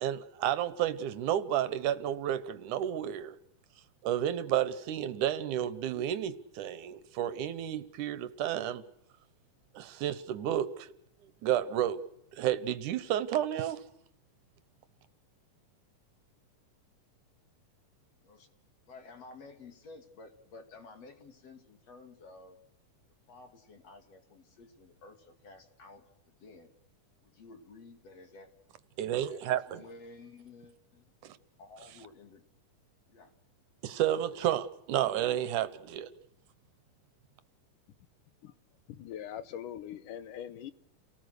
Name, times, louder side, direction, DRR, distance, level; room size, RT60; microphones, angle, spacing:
voice 1, 0.0-3.4 4.0-8.8 9.7-10.9 11.4-12.0 12.4-13.8 29.0-29.8 31.2-31.4 33.8-36.1, right 11 dB, 75° right, 2.4 m, -31 dB
voice 2, 18.9-22.6 23.3-26.7 27.2-28.5 29.2-31.0 31.6-32.4 33.1-33.3 34.1-34.5, left 3 dB, 55° left, 3.4 m, -53 dB
voice 3, 38.9-40.7, left 10 dB, 80° left, 2.6 m, -42 dB
30.0 x 19.0 x 6.6 m
omnidirectional pair, 3.7 m